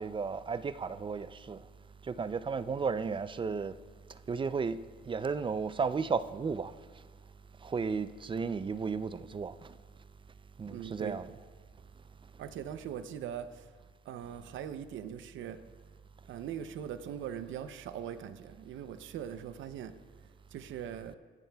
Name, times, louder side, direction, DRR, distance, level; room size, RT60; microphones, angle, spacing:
voice 1, 0.0-1.6 2.1-3.7 4.3-4.8 5.1-6.7 7.6-9.5 10.6-11.3, right 5 dB, 25° right, 0.4 m, -34 dB
voice 2, 10.7-11.3 12.4-13.7 14.0-15.6 16.3-20.0 20.5-21.2, right 9 dB, 75° right, 0.6 m, -41 dB
23.0 x 9.1 x 2.3 m
cardioid pair, 90°, 20 cm